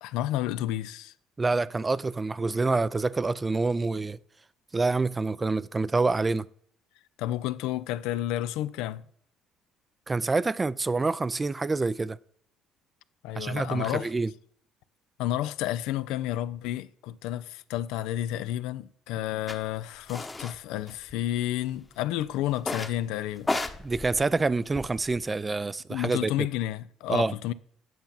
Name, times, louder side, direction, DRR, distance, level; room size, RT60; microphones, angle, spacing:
voice 1, 0.0-1.1 7.2-9.0 13.2-14.1 15.2-23.5 25.9-27.5, left 13 dB, 75° left, 0.4 m, -31 dB
voice 2, 1.4-4.2 4.7-6.5 10.1-12.2 13.4-14.3 23.8-26.5 27.1-27.3, right 3 dB, 25° right, 0.4 m, -27 dB
sound 1, 19.5-19.6 20.1-20.6 20.9-21.6 22.6-23.0 23.4-25.2, left 2 dB, 20° left, 0.9 m, -33 dB
9.3 x 5.8 x 5.5 m
hypercardioid pair, 60°, 0 cm